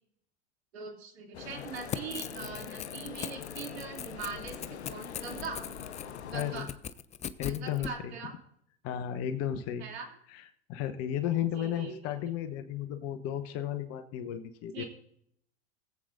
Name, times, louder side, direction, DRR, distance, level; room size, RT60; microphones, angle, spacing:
voice 1, 0.7-5.6 6.3-6.7 7.5-8.3 9.8-10.1 11.5-11.9 14.7-14.9, right 5 dB, 75° right, 1 dB, 2.9 m, -41 dB
sound 1, 1.3-6.6, left 7 dB, 85° left, 0.9 m, -43 dB
Crackle / Tearing, 1.5-7.9, left 9 dB, 20° left, 0.5 m, -41 dB
voice 2, 6.3-6.7 7.4-8.1 8.8-9.9 10.3-14.8, left 10 dB, 50° left, 9 dB, 1.0 m, -34 dB
21.0 x 7.9 x 2.6 m, 0.70 s
hypercardioid pair, 90°, 32 cm